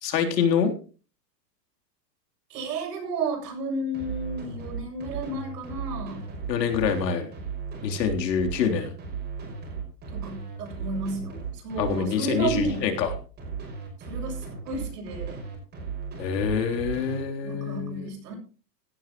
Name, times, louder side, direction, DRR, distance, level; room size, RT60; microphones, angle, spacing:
voice 1, 0.0-0.7 6.5-7.3 7.8-8.9 11.8-13.1 16.2-18.1, left 6 dB, 75° left, 4 dB, 3.7 m, -26 dB
voice 2, 2.5-6.3 10.1-12.9 14.1-15.4 17.4-18.4, right 2 dB, 70° right, 2 dB, 7.8 m, -32 dB
Distorted Kick Bass Drum Loop, 3.9-17.2, right 5 dB, 20° right, 5.7 m, -36 dB
16.5 x 13.0 x 3.1 m, 0.36 s
supercardioid pair, 165°, 50 cm